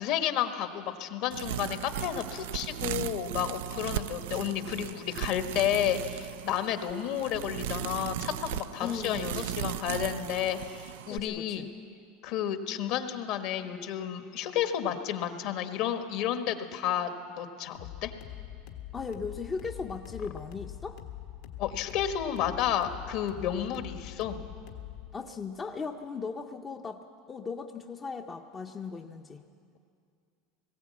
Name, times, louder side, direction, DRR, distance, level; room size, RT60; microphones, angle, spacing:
voice 1, 0.0-11.7 12.2-18.1 21.6-24.4, left 10 dB, 55° left, 7 dB, 1.4 m, -31 dB
sound 1, 1.3-11.2, right 12 dB, 85° right, 0.4 m, -37 dB
voice 2, 8.8-9.3 11.1-11.7 18.9-21.0 25.1-27.0 27.3-29.4, left 5 dB, 20° left, 4 dB, 0.6 m, -37 dB
sound 2, 17.7-25.1, left 12 dB, 70° left, 1.6 m, -44 dB
19.5 x 16.0 x 8.4 m, 2.3 s
supercardioid pair, 150°, 0 cm